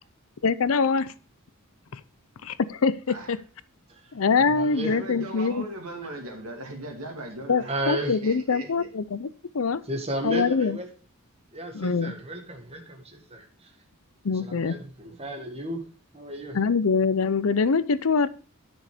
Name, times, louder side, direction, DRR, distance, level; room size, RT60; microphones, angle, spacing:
voice 1, 0.4-1.1 1.9-2.0 2.4-3.4 4.1-5.6 7.5-9.3 9.5-9.8 10.2-10.8 11.7-12.1 14.2-14.7 16.5-18.3, left 5 dB, 70° left, 0.6 m, -24 dB
voice 2, 4.4-4.9 7.7-8.2 9.8-10.9 11.5-13.7 14.3-15.8 16.1-16.6, right 1 dB, 30° right, 1.8 m, -33 dB
voice 3, 4.9-8.9, right 1 dB, 80° right, 2.7 m, -38 dB
10.0 x 6.4 x 5.0 m
head